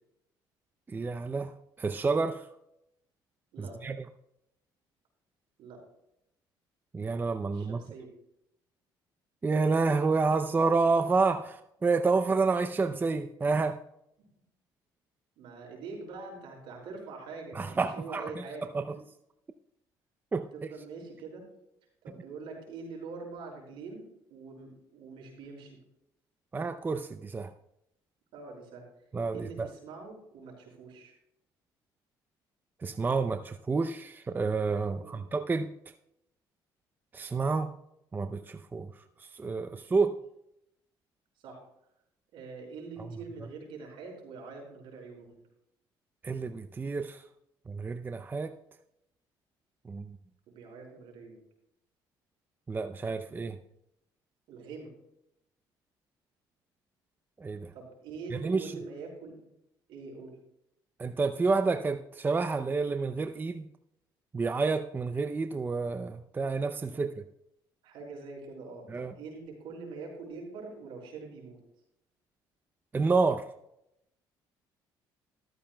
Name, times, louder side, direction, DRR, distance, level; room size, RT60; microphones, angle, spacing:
voice 1, 0.9-1.5 1.8-2.4 3.6-4.0 6.9-7.8 9.4-13.8 17.5-18.2 18.7-18.8 20.3-20.5 26.5-27.5 29.1-29.7 32.8-35.7 37.1-37.7 38.1-38.9 39.2-40.1 46.2-47.2 47.7-48.5 49.9-50.1 52.7-53.6 57.4-57.7 58.3-58.7 61.0-63.7 64.3-67.2 68.9-69.1 72.9-73.4, right 4 dB, 20° right, 9 dB, 0.6 m, -29 dB
voice 2, 3.5-3.8 5.6-5.8 7.5-8.1 15.4-18.6 20.5-21.5 22.0-24.1 24.3-25.8 28.3-28.9 29.3-31.1 35.0-35.2 39.7-39.9 41.4-41.6 42.3-45.4 50.5-51.4 54.5-54.9 57.7-59.4 59.9-60.3 67.8-71.6, right 4 dB, 75° right, 1 dB, 5.3 m, -44 dB
14.0 x 13.5 x 2.3 m, 0.80 s
cardioid pair, 100°, 9 cm